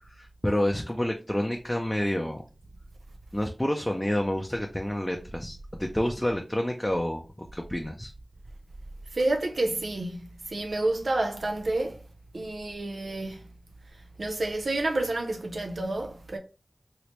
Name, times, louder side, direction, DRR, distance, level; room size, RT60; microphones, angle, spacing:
voice 1, 0.1-2.4 3.3-7.3 7.5-8.1, left 1 dB, 10° left, 0.5 m, -28 dB
voice 2, 9.1-12.0 12.3-13.4 13.9-16.4, right 2 dB, 85° right, 0.4 m, -29 dB
3.1 x 3.0 x 2.9 m
wide cardioid pair, 55°, 0 cm